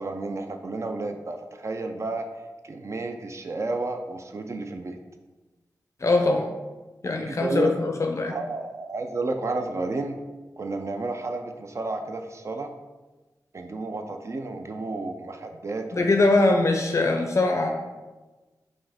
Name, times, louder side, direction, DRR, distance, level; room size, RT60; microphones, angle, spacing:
voice 1, 0.0-2.3 2.6-5.0 7.2-7.7 8.2-10.2 10.6-12.7 13.5-16.1, right 3 dB, 45° right, 5 dB, 0.4 m, -31 dB
voice 2, 6.0-6.5 7.0-8.4 15.9-17.7, left 2 dB, 45° left, 3 dB, 0.4 m, -22 dB
5.4 x 2.5 x 3.5 m, 1.2 s
wide cardioid pair, 80°, 7 cm